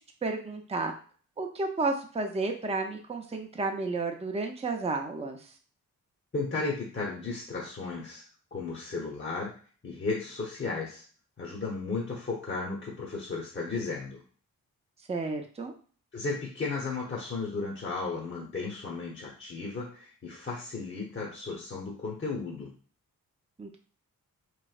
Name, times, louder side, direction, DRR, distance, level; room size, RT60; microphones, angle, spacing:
voice 1, 0.2-0.9 1.4-5.4 15.1-15.7 23.6-23.8, right 3 dB, 15° right, 3 dB, 0.6 m, -32 dB
voice 2, 6.3-8.2 8.5-9.5 9.8-11.0 11.4-14.2 16.1-22.7, left 3 dB, 30° left, -3 dB, 0.9 m, -34 dB
3.1 x 2.6 x 2.4 m, 0.42 s
supercardioid pair, 40°, 37 cm